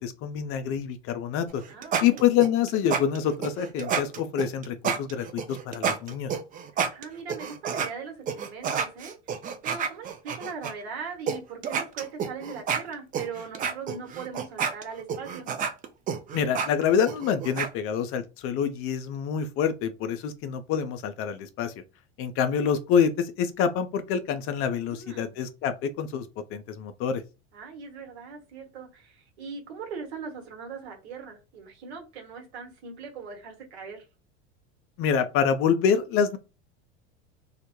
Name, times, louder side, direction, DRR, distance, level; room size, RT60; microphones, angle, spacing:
voice 1, 0.0-1.6 2.0-6.3 16.3-21.7 22.2-26.2 26.5-27.2 35.0-36.4, left 7 dB, 45° left, 0.4 m, -26 dB
sound 1, 1.5-7.9 8.3-10.7 11.3-11.4 11.6-17.7, right 6 dB, 25° right, 0.4 m, -30 dB
voice 2, 1.7-2.3 6.9-9.1 9.6-15.5 24.8-25.3 27.5-34.0, right 5 dB, 70° right, 1.1 m, -40 dB
2.2 x 2.1 x 2.9 m
hypercardioid pair, 90°, 33 cm